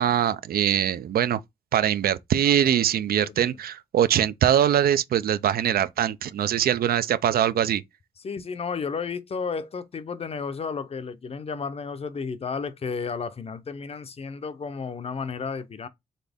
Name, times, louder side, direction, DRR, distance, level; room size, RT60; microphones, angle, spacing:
voice 1, 0.0-1.4 1.7-7.8, right 10 dB, 75° right, 0.4 m, -22 dB
voice 2, 2.6-3.6 8.2-15.9, left 5 dB, 40° left, 0.5 m, -33 dB
4.1 x 3.6 x 3.4 m
wide cardioid pair, 125°, 16 cm